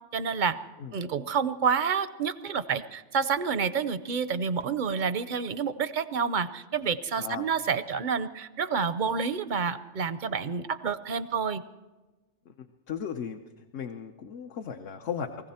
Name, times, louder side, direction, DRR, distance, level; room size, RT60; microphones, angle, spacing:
voice 1, 0.1-0.6 0.9-11.6, right 6 dB, 50° right, 13 dB, 0.6 m, -29 dB
voice 2, 12.9-13.4 13.7-15.5, left 7 dB, 65° left, 5 dB, 1.0 m, -36 dB
20.5 x 15.5 x 4.2 m, 1.2 s
omnidirectional pair, 1.3 m